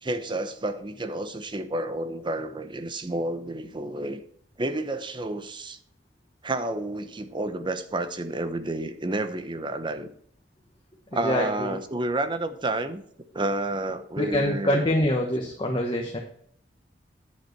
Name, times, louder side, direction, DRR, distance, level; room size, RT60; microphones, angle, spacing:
voice 1, 0.0-4.2 4.6-5.8 6.4-10.1 11.1-13.0 13.3-14.9, right 2 dB, 25° right, 10 dB, 0.8 m, -30 dB
voice 2, 11.2-11.7 14.2-16.2, left 1 dB, 30° left, 0 dB, 1.3 m, -25 dB
9.7 x 7.3 x 4.6 m, 0.64 s
head